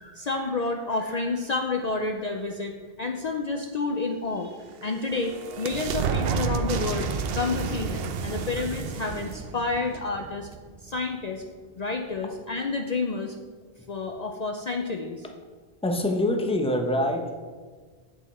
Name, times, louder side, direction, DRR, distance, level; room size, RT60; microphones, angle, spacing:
voice 1, 0.0-10.5 10.8-11.4 11.8-13.4 13.9-15.2, left 3 dB, 50° left, 3 dB, 0.6 m, -30 dB
sound 1, 4.5-10.9, right 6 dB, 70° right, 0.8 m, -31 dB
voice 2, 15.8-17.4, left 1 dB, 5° left, 3 dB, 0.7 m, -25 dB
8.7 x 8.0 x 4.2 m, 1.5 s
omnidirectional pair, 1.0 m